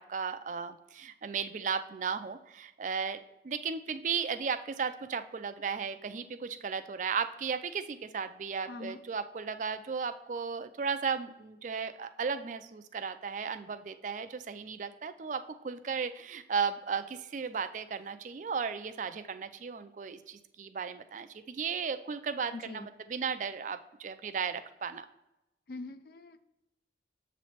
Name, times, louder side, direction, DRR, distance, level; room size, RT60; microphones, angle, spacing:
voice 1, 0.0-3.2 3.4-25.1, right 6 dB, 45° right, 10 dB, 0.4 m, -35 dB
voice 2, 8.7-9.0 22.5-22.9 25.7-26.4, left 3 dB, 55° left, 10 dB, 0.4 m, -43 dB
7.3 x 3.1 x 4.2 m, 0.91 s
head